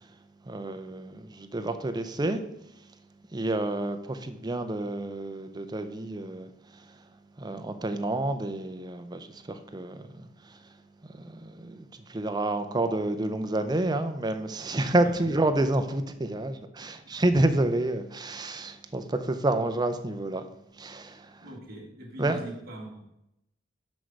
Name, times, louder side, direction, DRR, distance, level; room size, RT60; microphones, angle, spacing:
voice 1, 0.5-2.4 3.3-6.8 7.4-10.6 11.1-20.4 20.8-21.4 22.2-22.4, right 2 dB, 20° right, 0.5 m, -29 dB
voice 2, 15.0-15.4 16.8-17.1 21.4-23.1, right 1 dB, 50° right, 1.7 m, -42 dB
6.3 x 6.2 x 4.6 m
head